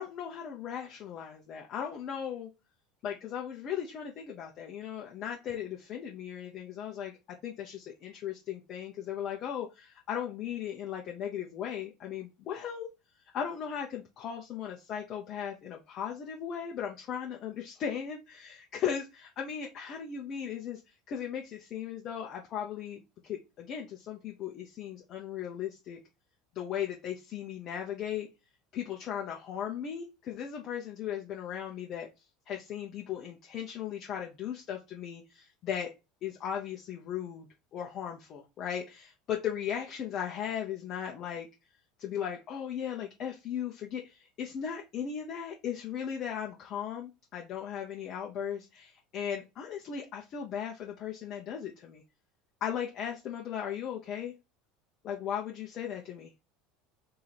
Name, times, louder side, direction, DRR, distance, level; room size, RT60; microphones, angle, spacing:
voice 1, 0.0-2.5 3.0-12.9 13.3-20.8 21.1-26.0 26.5-28.3 28.7-32.1 32.5-35.9 36.2-41.5 42.0-52.0 52.6-54.3 55.0-56.3, left 8 dB, 50° left, 0 dB, 0.8 m, -37 dB
3.0 x 2.7 x 4.1 m, 0.25 s
hypercardioid pair, 85°, 0 cm